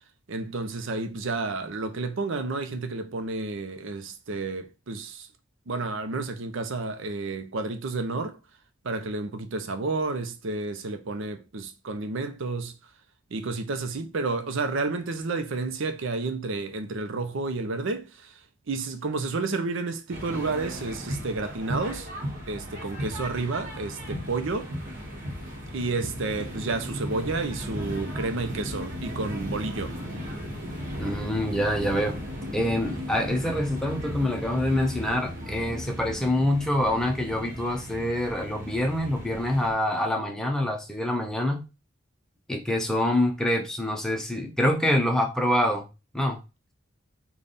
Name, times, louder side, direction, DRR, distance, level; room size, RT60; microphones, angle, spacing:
voice 1, 0.3-5.3 5.7-8.4 8.8-12.8 13.3-18.4 18.7-22.1 22.5-24.7 25.7-29.9, right 3 dB, 70° right, 0.6 m, -31 dB
sound 1, 20.1-39.7, equal, 45° right, 1.2 m, -36 dB
voice 2, 31.0-32.2 32.5-41.6 42.5-45.8 46.1-46.4, left 1 dB, 5° left, 0.7 m, -26 dB
3.4 x 2.3 x 4.0 m
head